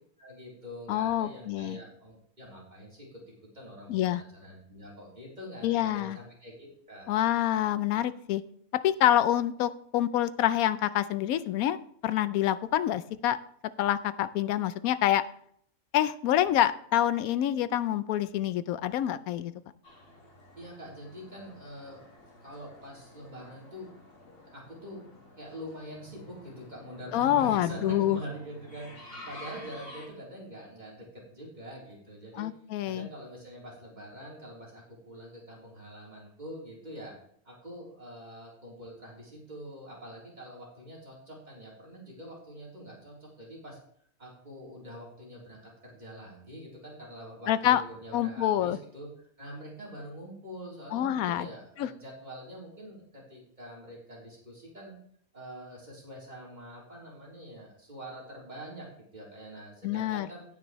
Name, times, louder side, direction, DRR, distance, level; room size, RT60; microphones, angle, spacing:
voice 1, 0.2-3.2 3.5-7.1 20.6-22.2 22.4-23.9 24.4-25.1 25.4-32.5 32.8-37.1 37.5-43.8 44.2-55.0 55.3-58.9 59.1-60.5, equal, 30° right, -5 dB, 3.5 m, -45 dB
voice 2, 0.9-1.8 3.9-4.2 5.6-6.2 7.1-8.4 8.7-13.4 13.8-15.2 15.9-19.5 27.1-28.2 32.3-33.1 47.5-47.8 48.1-48.8 50.9-51.5 51.8-51.9 59.8-60.3, left 12 dB, 90° left, 15 dB, 1.0 m, -27 dB
sound 1, 19.8-30.1, left 1 dB, 45° left, 2.1 m, -50 dB
17.0 x 6.2 x 3.1 m, 0.65 s
omnidirectional pair, 1.5 m